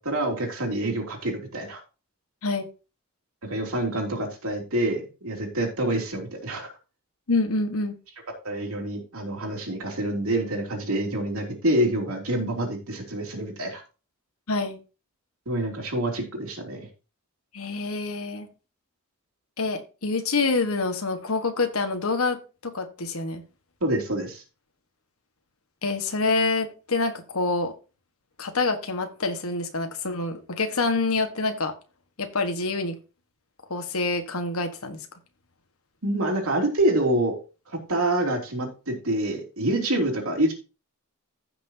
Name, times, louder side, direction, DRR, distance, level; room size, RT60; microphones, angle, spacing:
voice 1, 0.0-1.8 3.4-6.7 8.4-13.8 15.5-16.9 23.8-24.4 36.0-37.4 37.7-40.5, right 1 dB, 75° right, 2 dB, 3.1 m, -27 dB
voice 2, 7.3-7.9 14.5-14.8 17.5-18.5 19.6-23.4 25.8-27.7 28.4-31.7 32.2-33.0 33.7-35.0, left 3 dB, 80° left, 6 dB, 1.5 m, -26 dB
15.5 x 6.1 x 2.8 m, 0.32 s
head